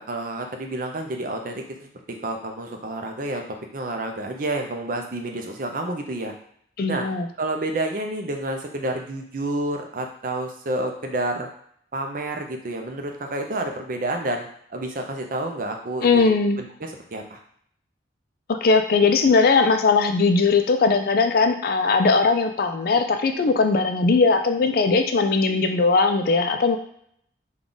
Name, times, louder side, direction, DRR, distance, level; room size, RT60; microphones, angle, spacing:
voice 1, 0.0-3.4 3.7-6.3 6.9-7.1 7.4-11.5 11.9-16.3 16.6-17.4, right 2 dB, 50° right, 3 dB, 0.5 m, -29 dB
voice 2, 6.8-7.3 16.0-16.6 18.5-26.8, left 4 dB, 55° left, 7 dB, 0.4 m, -19 dB
3.5 x 2.3 x 3.8 m, 0.66 s
head